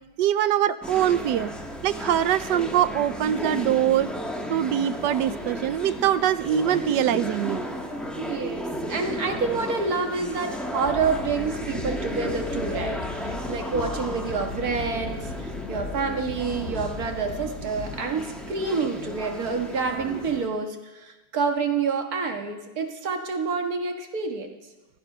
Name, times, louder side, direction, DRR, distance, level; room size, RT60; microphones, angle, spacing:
voice 1, 0.2-1.5 1.8-4.1 4.5-7.6, right 11 dB, 85° right, 14 dB, 1.3 m, -23 dB
sound 1, 0.8-20.5, equal, ahead, 1.2 m, -34 dB
voice 2, 8.2-24.5, right 5 dB, 60° right, 4 dB, 2.0 m, -28 dB
sound 2, 10.8-18.5, left 5 dB, 45° left, 1.4 m, -37 dB
16.0 x 12.5 x 5.5 m, 1.1 s
omnidirectional pair, 1.8 m